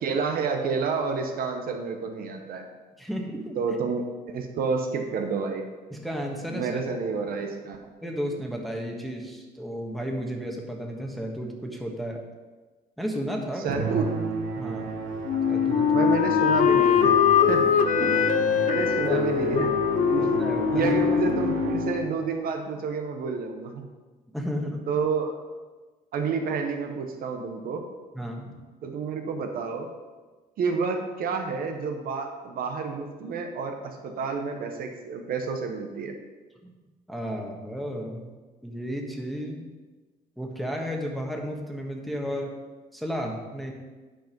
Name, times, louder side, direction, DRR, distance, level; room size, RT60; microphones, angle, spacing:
voice 1, 0.0-2.7 3.6-5.6 6.5-7.8 13.6-14.1 15.9-17.7 18.7-19.7 20.1-20.2 20.7-23.9 24.9-25.4 26.1-27.8 28.8-29.9 30.6-36.2, right 5 dB, 60° right, 4 dB, 1.0 m, -29 dB
voice 2, 3.0-3.6 5.9-6.8 8.0-12.2 13.0-13.7 14.6-14.9 15.5-15.9 18.0-18.7 19.1-19.2 19.6-19.7 20.2-20.9 24.3-24.9 28.1-28.6 36.6-36.8 37.1-38.3 38.6-39.7 40.4-42.6 42.9-43.7, equal, ahead, 0 dB, 1.3 m, -33 dB
Musical instrument, 13.7-22.2, right 4 dB, 90° right, 1.2 m, -31 dB
Wind instrument woodwind instrument, 15.3-22.1, left 8 dB, 50° left, 0.6 m, -22 dB
8.9 x 5.2 x 5.3 m, 1.3 s
cardioid pair, 110°, 17 cm